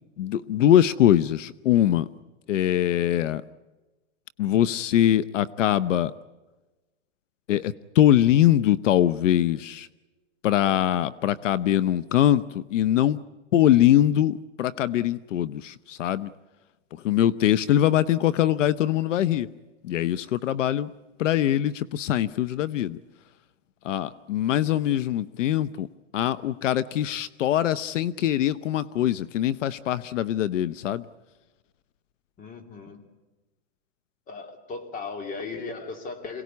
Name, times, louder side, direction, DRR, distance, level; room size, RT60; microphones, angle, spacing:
voice 1, 0.2-2.1 2.5-3.4 4.4-6.1 7.5-9.9 10.4-13.2 13.5-16.3 16.9-19.5 19.8-20.9 21.2-23.0 23.8-25.9 26.1-31.1, left 11 dB, 80° left, 17 dB, 0.9 m, -22 dB
voice 2, 32.4-33.1 34.3-36.4, left 4 dB, 20° left, 7 dB, 2.7 m, -37 dB
27.0 x 18.0 x 9.5 m, 1.2 s
supercardioid pair, 155°, 36 cm